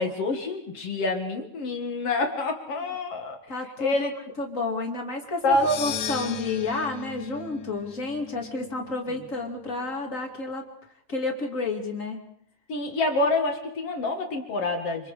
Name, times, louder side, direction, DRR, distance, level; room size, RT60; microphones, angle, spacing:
voice 1, 0.0-3.4 3.8-4.1 5.4-5.7 12.7-15.1, left 2 dB, 60° left, 3 dB, 1.6 m, -27 dB
voice 2, 3.5-4.0 4.4-10.6 11.1-12.2, left 2 dB, 30° left, 1 dB, 1.5 m, -30 dB
sound 1, 5.5-9.8, left 9 dB, 90° left, 1.5 m, -37 dB
27.0 x 26.5 x 5.0 m, 0.68 s
omnidirectional pair, 5.5 m